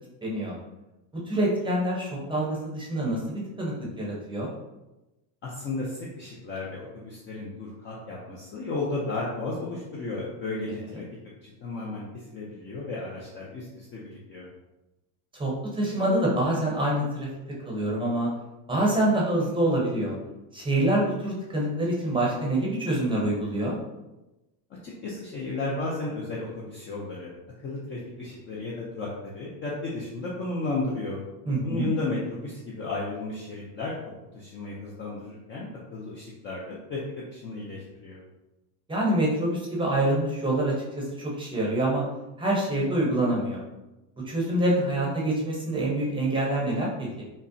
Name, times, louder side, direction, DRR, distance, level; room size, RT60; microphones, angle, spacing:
voice 1, 0.2-0.5 1.3-4.5 15.4-17.3 17.6-18.3 18.7-20.1 20.5-23.8 31.5-31.9 38.9-42.0 42.4-43.6 44.2-47.2, right 1 dB, 10° right, -3 dB, 0.6 m, -26 dB
voice 2, 5.4-11.0 11.4-14.5 24.8-27.3 27.6-31.2 31.6-33.9 34.3-38.2, left 2 dB, 25° left, -5 dB, 0.4 m, -34 dB
5.3 x 2.0 x 2.6 m, 1.0 s
cardioid pair, 150°, 48 cm